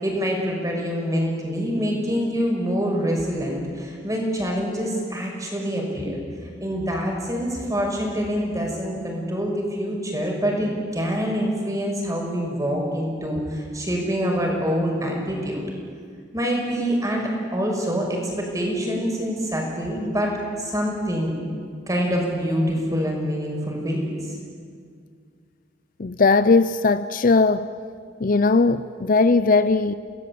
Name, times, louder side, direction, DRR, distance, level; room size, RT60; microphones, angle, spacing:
voice 1, 0.0-6.2 6.6-15.6 16.3-21.3 21.9-24.3, equal, 20° right, 6.1 m, -25 dB
voice 2, 26.0-27.7 28.2-29.9, left 3 dB, 45° left, 0.6 m, -18 dB
30.0 x 19.5 x 8.6 m
head